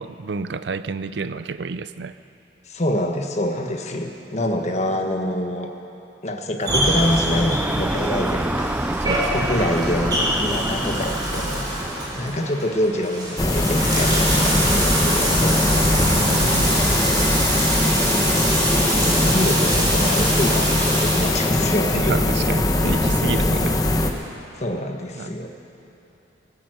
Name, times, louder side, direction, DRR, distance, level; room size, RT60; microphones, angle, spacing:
voice 1, 0.0-2.1 9.0-9.5 15.9-16.7 22.0-23.8 25.2-25.3, right 4 dB, 70° right, 13 dB, 0.5 m, -30 dB
voice 2, 2.7-5.7 6.2-8.7 9.3-11.8 12.1-16.4 18.8-22.2 24.6-25.5, left 1 dB, 40° left, 3 dB, 1.4 m, -26 dB
Bathtub (filling or washing), 6.6-21.5, right 1 dB, 25° right, 3.3 m, -25 dB
sound 1, 6.7-12.4, right 1 dB, 10° right, 0.3 m, -26 dB
sound 2, 13.4-24.1, left 1 dB, 20° left, 0.9 m, -21 dB
19.0 x 9.4 x 7.9 m, 2.9 s
head